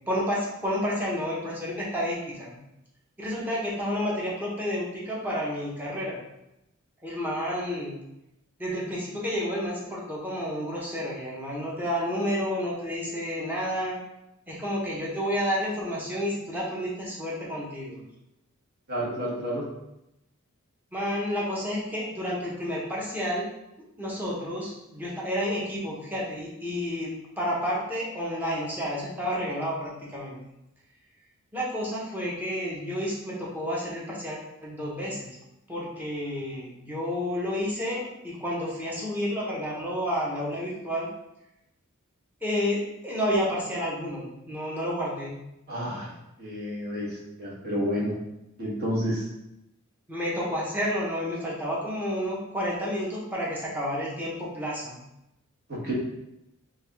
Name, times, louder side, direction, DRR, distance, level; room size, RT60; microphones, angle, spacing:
voice 1, 0.1-2.6 3.2-6.2 7.0-8.0 8.6-14.0 14.5-18.0 20.9-23.5 24.0-27.1 27.4-30.4 31.5-35.3 35.7-41.1 42.4-45.4 50.1-55.0, equal, 10° right, -5 dB, 0.8 m, -30 dB
voice 2, 18.9-19.7 45.7-46.1 46.4-48.2 48.6-49.3 55.7-55.9, equal, 45° right, -6 dB, 1.2 m, -30 dB
3.4 x 2.5 x 3.4 m, 0.89 s
head